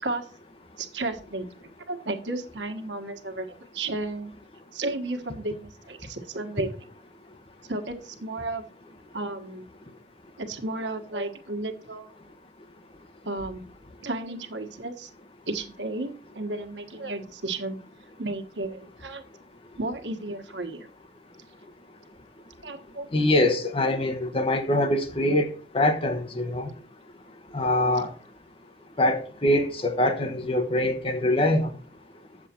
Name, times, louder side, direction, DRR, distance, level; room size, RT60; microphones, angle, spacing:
voice 1, 0.8-1.5 1.9-3.5 3.7-4.3 4.7-6.8 7.7-8.6 9.1-9.7 10.4-12.1 13.2-13.6 14.0-15.1 15.5-17.8 18.2-19.2 19.8-20.9 22.6-23.1, right 2 dB, 90° right, 1.4 m, -33 dB
voice 2, 23.1-25.5 25.7-26.7 27.5-28.1 29.0-31.7, left 1 dB, 30° left, 1.0 m, -23 dB
8.4 x 7.4 x 4.4 m
head